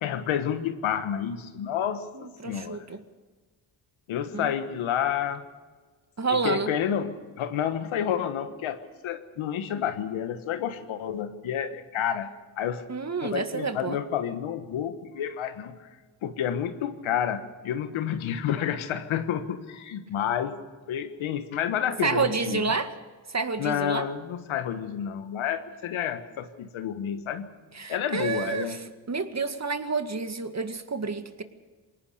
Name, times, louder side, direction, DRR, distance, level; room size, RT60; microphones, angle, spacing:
voice 1, 0.0-2.9 4.1-5.4 6.3-12.8 13.2-15.7 16.2-20.6 20.9-22.7 23.6-27.5 27.9-28.8, left 9 dB, 85° left, 10 dB, 1.5 m, -30 dB
voice 2, 2.1-3.0 4.3-4.5 6.2-6.7 12.9-14.0 22.0-22.9 23.3-24.1 27.7-28.8 29.1-31.4, right 4 dB, 35° right, 8 dB, 2.0 m, -29 dB
21.5 x 18.5 x 6.7 m, 1.4 s
supercardioid pair, 45°, 47 cm